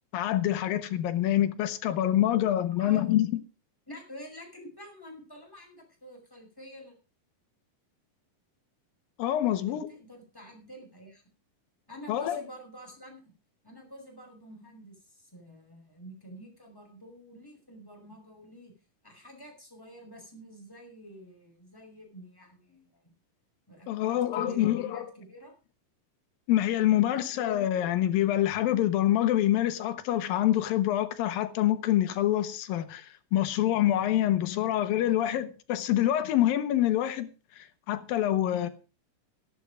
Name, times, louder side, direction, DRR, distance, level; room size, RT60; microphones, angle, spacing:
voice 1, 0.1-3.3 9.2-9.9 12.1-12.4 23.9-25.1 26.5-37.3 37.6-38.7, left 12 dB, 80° left, 2.9 m, -26 dB
voice 2, 2.8-3.1 3.9-6.9 9.5-11.2 11.9-13.3 13.6-18.7 19.0-23.1 23.7-25.6 27.0-27.3, equal, 5° left, 5.3 m, -48 dB
13.5 x 11.5 x 5.1 m
omnidirectional pair, 4.1 m